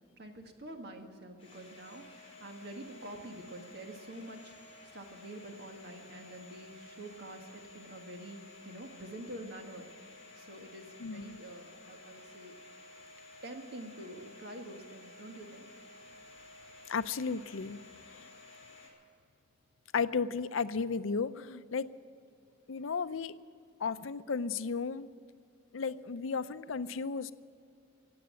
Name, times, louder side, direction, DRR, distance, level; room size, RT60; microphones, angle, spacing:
voice 1, 0.2-4.6 4.9-8.4 8.7-9.9 10.4-12.5 13.4-15.7, right 1 dB, 55° right, 4 dB, 1.7 m, -47 dB
Domestic sounds home sounds, 1.4-18.9, left 2 dB, 30° left, 4.6 m, -53 dB
voice 2, 11.0-11.4 16.9-17.8 18.2-18.3 19.9-21.9 22.7-23.4 23.8-25.1 25.7-27.3, left 5 dB, 75° left, 14 dB, 0.5 m, -34 dB
16.5 x 8.6 x 9.8 m, 2.3 s
head